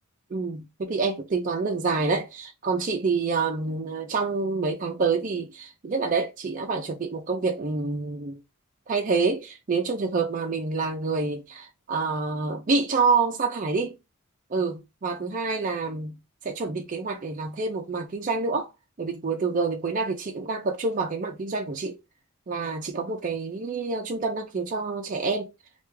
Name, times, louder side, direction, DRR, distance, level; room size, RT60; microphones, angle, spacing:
voice 1, 0.3-8.4 8.9-14.0 14.5-16.2 16.4-18.7 19.0-22.0 22.5-25.5, right 4 dB, 35° right, 0.4 m, -27 dB
3.1 x 2.3 x 3.2 m
head